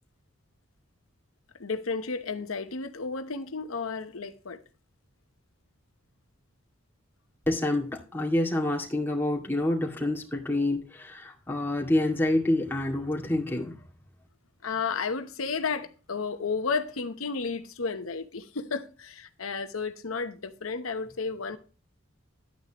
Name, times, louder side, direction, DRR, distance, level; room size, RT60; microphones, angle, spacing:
voice 1, 1.6-4.6 14.6-21.6, left 4 dB, 85° left, 0.9 m, -32 dB
voice 2, 7.5-13.8, left 1 dB, 10° left, 2.1 m, -27 dB
12.0 x 9.0 x 3.0 m
head